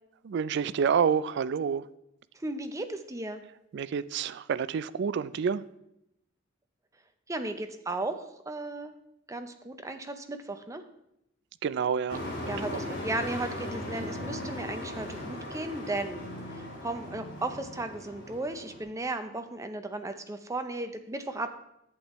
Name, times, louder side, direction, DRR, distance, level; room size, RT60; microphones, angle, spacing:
voice 1, 0.2-1.9 3.7-5.6 11.6-12.8, right 7 dB, 60° right, 15 dB, 0.3 m, -28 dB
voice 2, 2.3-3.4 7.3-8.9 9.3-10.8 12.5-21.5, right 2 dB, 15° right, 7 dB, 0.6 m, -35 dB
Truck, 12.1-18.8, left 1 dB, 65° left, 2.4 m, -38 dB
11.0 x 8.2 x 3.1 m, 0.82 s
head